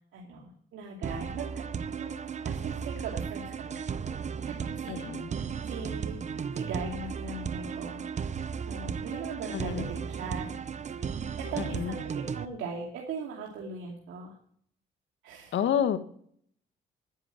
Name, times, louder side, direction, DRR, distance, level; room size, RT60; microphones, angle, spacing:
voice 1, 0.0-1.6 2.0-2.2 2.4-3.8 4.5-5.0 5.3-6.2 6.5-8.0 8.6-10.5 10.9-11.1 11.4-12.1 12.3-14.3 15.2-15.5, right 4 dB, 80° right, -1 dB, 2.5 m, -39 dB
sound 1, 1.0-12.4, right 6 dB, 35° right, 0.7 m, -35 dB
voice 2, 4.9-5.3 9.5-9.9 11.6-12.0 15.5-16.0, left 9 dB, 70° left, 9 dB, 1.4 m, -29 dB
10.0 x 9.5 x 8.9 m, 0.63 s
cardioid pair, 90°, 20 cm